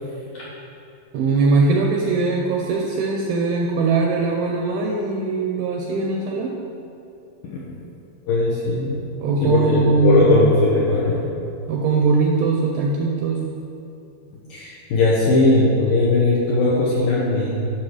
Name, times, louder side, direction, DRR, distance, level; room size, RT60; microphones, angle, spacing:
voice 1, 1.1-6.6 9.2-10.6 11.7-13.5, right 4 dB, 80° right, 0 dB, 2.2 m, -20 dB
voice 2, 8.3-9.0 9.4-11.2 14.5-17.6, left 2 dB, 75° left, -5 dB, 2.1 m, -19 dB
11.5 x 6.2 x 4.9 m, 2.7 s
omnidirectional pair, 5.1 m